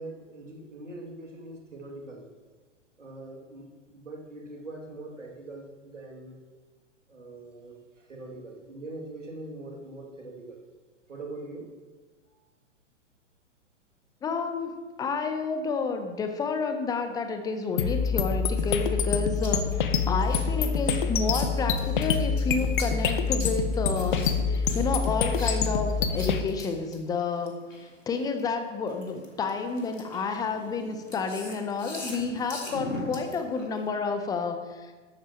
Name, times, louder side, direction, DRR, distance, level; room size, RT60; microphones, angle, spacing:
voice 1, 0.0-2.3 3.0-6.4 7.1-7.8 8.1-10.6 11.1-11.7 17.8-17.9 23.9-24.2, right 2 dB, 75° right, -1 dB, 2.8 m, -42 dB
voice 2, 14.2-14.7 15.0-27.5 27.8-34.9, left 4 dB, 10° left, 7 dB, 0.8 m, -30 dB
sound 1, 17.8-26.4, left 5 dB, 40° left, 0.9 m, -26 dB
sound 2, 18.6-28.4 28.9-33.9, left 1 dB, 85° left, 2.6 m, -42 dB
14.0 x 12.0 x 3.1 m, 1.4 s
figure-of-eight pair, 110°, 38 cm